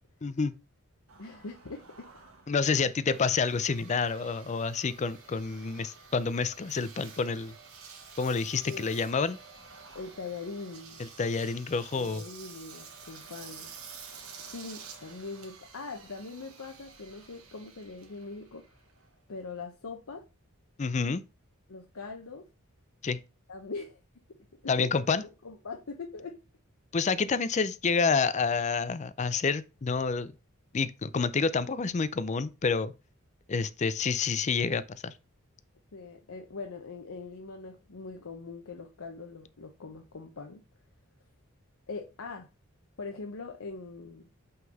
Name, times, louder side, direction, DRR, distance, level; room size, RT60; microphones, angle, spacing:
voice 1, 0.2-0.5 2.5-7.5 8.2-9.4 11.0-12.2 20.8-21.2 23.0-23.2 24.7-25.2 26.9-30.3 30.7-32.9 33.5-35.1, left 5 dB, 35° left, 0.4 m, -28 dB
Engine, 1.1-19.5, right 5 dB, 85° right, 1.5 m, -50 dB
voice 2, 1.2-2.1 2.8-2.9 8.6-8.9 9.9-11.0 11.9-13.7 14.5-18.6 19.3-20.2 21.7-22.5 23.5-24.0 24.3-24.4 24.6-24.9 25.4-26.4 35.9-40.6 41.9-42.5 43.0-44.3, left 4 dB, 90° left, 0.8 m, -42 dB
5.6 x 3.9 x 5.2 m
head